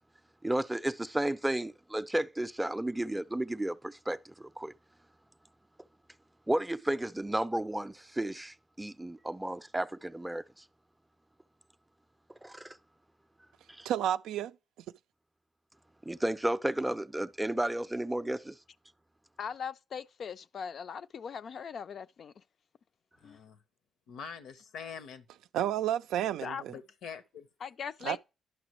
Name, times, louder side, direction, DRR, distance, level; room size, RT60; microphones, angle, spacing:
voice 1, 0.4-4.7 6.5-10.6 12.4-12.8 13.7-13.9 16.0-18.6, right 1 dB, 10° right, 0.4 m, -33 dB
voice 2, 13.8-14.6 25.5-26.7 28.0-28.2, right 11 dB, 90° right, 0.3 m, -31 dB
voice 3, 19.4-22.4 23.2-23.4 26.4-26.6 27.6-28.2, left 7 dB, 60° left, 0.4 m, -40 dB
voice 4, 23.2-23.6 24.1-25.2 26.7-27.5, left 6 dB, 85° left, 0.8 m, -44 dB
11.0 x 6.0 x 3.0 m
cardioid pair, 80°, 0 cm